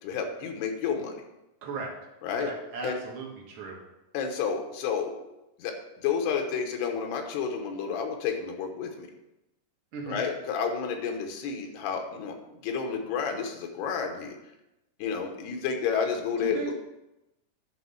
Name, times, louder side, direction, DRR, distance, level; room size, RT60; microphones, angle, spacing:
voice 1, 0.0-1.2 2.2-2.5 2.8-3.0 4.1-5.1 5.6-5.8 6.0-9.1 10.1-12.4 12.6-14.4 15.0-16.7, left 6 dB, 80° left, 4 dB, 3.1 m, -30 dB
voice 2, 2.3-3.8 9.9-10.2 16.4-16.7, right 4 dB, 50° right, -2 dB, 1.6 m, -36 dB
11.0 x 4.1 x 7.0 m, 0.93 s
omnidirectional pair, 4.6 m